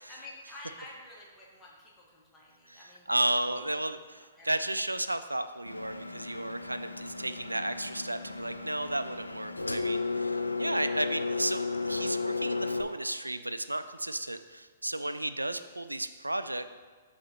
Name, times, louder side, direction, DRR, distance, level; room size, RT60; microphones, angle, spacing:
voice 1, 0.1-3.2 4.2-4.5 4.7-4.8, left 2 dB, 10° left, -5 dB, 1.6 m, -50 dB
voice 2, 2.7-16.7, right 1 dB, 90° right, 11 dB, 0.4 m, -33 dB
Engine, 5.7-12.8, left 3 dB, 85° left, 0.4 m, -34 dB
12.5 x 4.1 x 3.0 m, 1.5 s
figure-of-eight pair, 115°, 0 cm